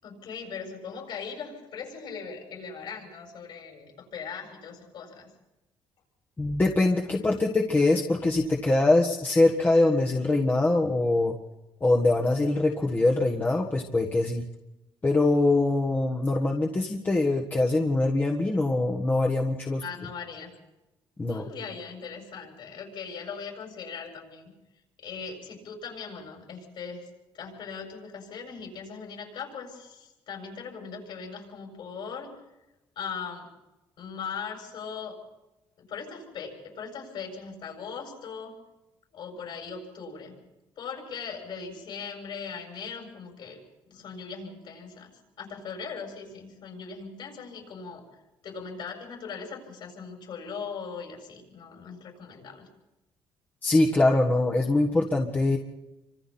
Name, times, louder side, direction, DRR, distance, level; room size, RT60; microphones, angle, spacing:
voice 1, 0.0-5.3 19.8-20.5 21.3-24.5 25.0-27.1 27.3-32.4 33.0-33.5 34.0-35.2 35.8-38.6 39.1-40.4 40.8-43.6 43.9-45.1 45.4-48.0 48.4-52.7, left 6 dB, 60° left, 0 dB, 7.6 m, -39 dB
voice 2, 6.4-11.3 11.8-14.4 15.0-19.8 21.2-21.5 53.6-55.6, left 2 dB, 20° left, -1 dB, 1.5 m, -23 dB
28.5 x 25.5 x 4.4 m, 1.0 s
cardioid pair, 140°, 9 cm